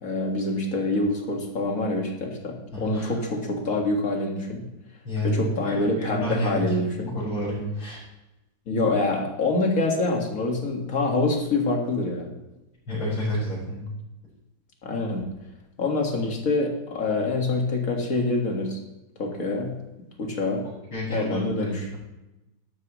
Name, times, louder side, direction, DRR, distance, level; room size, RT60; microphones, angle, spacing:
voice 1, 0.0-4.7 5.2-7.2 8.7-12.3 14.8-15.2 15.8-18.8 19.2-19.8 20.2-20.6 21.1-21.9, left 2 dB, 45° left, 1 dB, 2.2 m, -26 dB
voice 2, 2.7-3.1 5.0-6.6 7.1-8.0 12.9-13.9 20.9-22.0, equal, 90° left, -11 dB, 5.5 m, -29 dB
12.5 x 12.0 x 3.1 m, 0.98 s
omnidirectional pair, 2.2 m